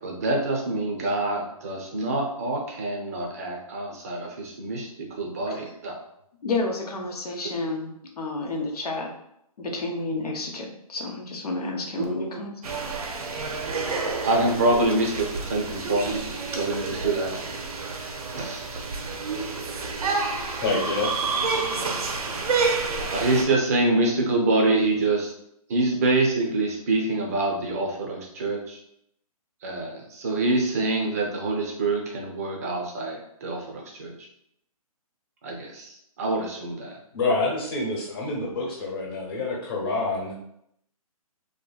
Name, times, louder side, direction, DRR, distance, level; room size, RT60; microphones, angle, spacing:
voice 1, 0.0-6.0 12.0-12.4 14.2-16.2 16.5-17.3 18.3-18.8 23.1-25.3 25.7-28.8 29.6-34.1 35.4-35.9 36.2-37.0, right 2 dB, 25° right, 0 dB, 0.4 m, -26 dB
voice 2, 6.4-9.1 9.6-12.6, left 3 dB, 85° left, 2 dB, 0.8 m, -30 dB
sound 1, 12.6-23.4, right 4 dB, 80° right, 0.6 m, -29 dB
voice 3, 20.6-21.1 37.1-40.3, left 3 dB, 40° left, -3 dB, 1.0 m, -27 dB
2.8 x 2.6 x 2.3 m, 0.74 s
hypercardioid pair, 160°, 19 cm